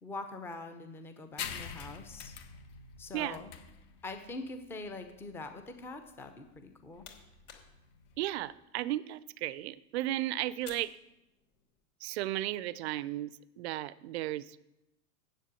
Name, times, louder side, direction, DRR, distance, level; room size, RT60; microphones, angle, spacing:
voice 1, 0.0-2.3 3.0-3.5 4.0-7.1, left 3 dB, 5° left, 7 dB, 0.5 m, -43 dB
sound 1, 1.4-8.5, left 7 dB, 45° left, 1.3 m, -46 dB
voice 2, 3.1-3.4 8.2-10.9 12.0-13.3 13.6-14.5, right 15 dB, 45° right, 19 dB, 0.4 m, -34 dB
sound 2, 6.5-11.8, left 6 dB, 70° left, 3.1 m, -57 dB
7.6 x 7.4 x 8.2 m, 0.91 s
hypercardioid pair, 135°, 47 cm